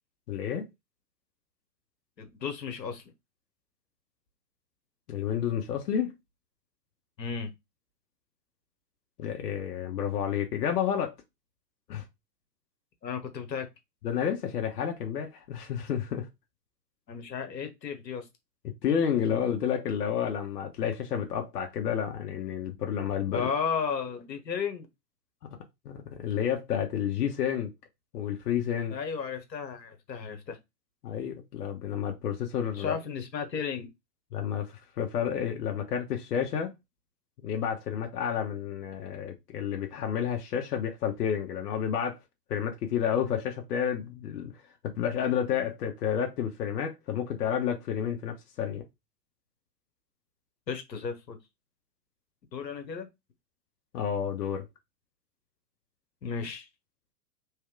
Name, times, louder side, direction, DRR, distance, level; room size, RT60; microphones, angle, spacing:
voice 1, 0.3-0.7 5.1-6.1 9.2-11.1 11.9-12.0 14.0-16.3 18.8-23.5 25.8-27.7 28.1-29.0 31.0-32.9 34.3-36.7 37.4-42.2 42.5-44.5 44.8-48.8 53.9-54.7, left 8 dB, 70° left, 1.3 m, -30 dB
voice 2, 2.2-3.0 7.2-7.5 13.0-13.7 17.1-18.2 23.3-24.9 28.9-30.6 32.8-33.9 50.7-51.4 52.5-53.1 56.2-56.7, left 6 dB, 85° left, 1.5 m, -34 dB
3.4 x 3.3 x 4.8 m
hypercardioid pair, 110°, 49 cm